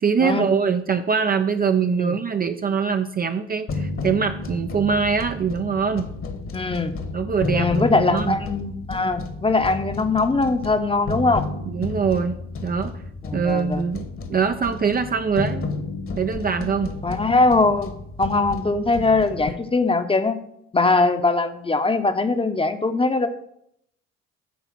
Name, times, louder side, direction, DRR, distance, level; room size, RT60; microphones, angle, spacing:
voice 1, 0.0-6.1 7.1-8.4 11.6-12.9 13.3-15.6 16.2-16.9, right 6 dB, 25° right, 7 dB, 0.5 m, -23 dB
sound 1, 3.7-19.5, left 3 dB, 40° left, 1.3 m, -32 dB
voice 2, 6.5-6.9 7.5-11.4 13.2-13.8 17.0-17.9 18.2-20.4 20.7-23.3, left 3 dB, 15° left, 9 dB, 0.9 m, -21 dB
9.4 x 3.9 x 6.0 m, 0.73 s
hypercardioid pair, 60°, 35 cm